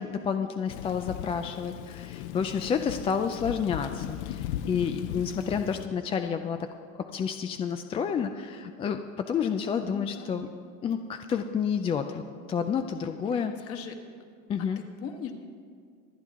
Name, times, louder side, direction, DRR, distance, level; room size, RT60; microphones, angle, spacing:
voice 1, 0.0-6.6 7.1-10.5 10.8-12.2 12.5-13.5 14.5-14.8, left 7 dB, 20° left, 7 dB, 0.3 m, -30 dB
Thunder / Rain, 0.7-5.9, left 11 dB, 80° left, 0.6 m, -38 dB
voice 2, 9.9-10.3 13.3-14.0 14.6-15.3, left 8 dB, 40° left, 3 dB, 1.6 m, -40 dB
25.5 x 9.1 x 3.6 m, 2.1 s
supercardioid pair, 140°, 34 cm